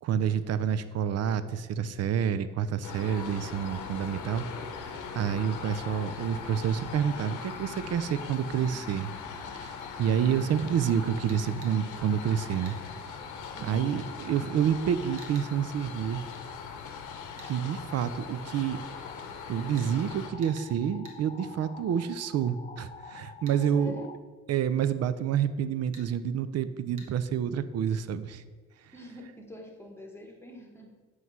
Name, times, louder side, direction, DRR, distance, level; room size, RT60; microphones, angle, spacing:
voice 1, 0.0-4.5 4.7-9.1 9.4-12.8 13.6-16.2 17.4-18.8 19.5-23.9 24.5-28.4 28.8-28.9, right 8 dB, 55° right, 14 dB, 0.4 m, -28 dB
sound 1, 2.8-20.3, left 6 dB, 85° left, 0.8 m, -41 dB
sound 2, 5.5-24.2, left 6 dB, 25° left, 0.3 m, -48 dB
sound 3, 11.3-11.8 12.6-12.8 15.2-15.5 17.4-17.5 19.8-19.9 20.4-20.7 21.0-21.2 23.5-23.6 25.9-26.1 27.0-27.1, right 3 dB, 75° right, 1.2 m, -49 dB
voice 2, 13.5-13.9 23.7-24.1 28.9-31.0, left 1 dB, 10° left, 1 dB, 1.1 m, -45 dB
7.8 x 3.2 x 5.4 m, 1.4 s
cardioid pair, 90°, 30 cm